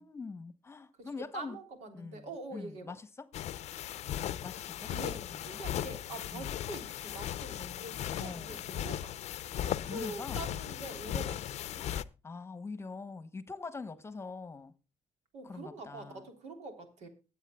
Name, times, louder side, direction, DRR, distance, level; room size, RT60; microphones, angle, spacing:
voice 1, 0.0-1.6 1.9-3.3 4.4-5.4 6.3-6.5 8.2-8.6 9.9-10.5 11.7-14.7 15.4-16.3, left 4 dB, 20° left, 1.0 m, -44 dB
voice 2, 1.0-2.9 4.8-9.2 9.5-11.5 15.3-17.1, right 2 dB, 80° right, 3.5 m, -45 dB
sound 1, 3.3-12.0, left 11 dB, 70° left, 0.6 m, -37 dB
23.0 x 8.3 x 2.3 m
cardioid pair, 125°, 12 cm